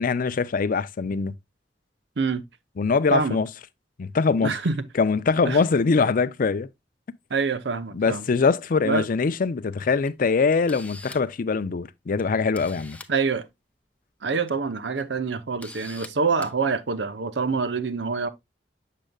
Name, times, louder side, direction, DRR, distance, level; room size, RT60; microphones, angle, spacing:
voice 1, 0.0-1.3 2.8-3.5 4.0-4.5 5.0-6.7 7.9-13.0, left 4 dB, 50° left, 0.4 m, -23 dB
voice 2, 4.4-4.9 5.4-5.6 7.3-8.3 8.8-9.0 13.1-13.4 14.2-18.3, right 4 dB, 70° right, 0.7 m, -26 dB
Camera, 10.0-10.1 10.5-11.3 12.2-12.3 12.5-13.1 14.3-14.5 14.9-15.0 15.6-16.1 16.4-16.5, left 2 dB, 10° left, 0.6 m, -43 dB
7.5 x 6.5 x 2.2 m
head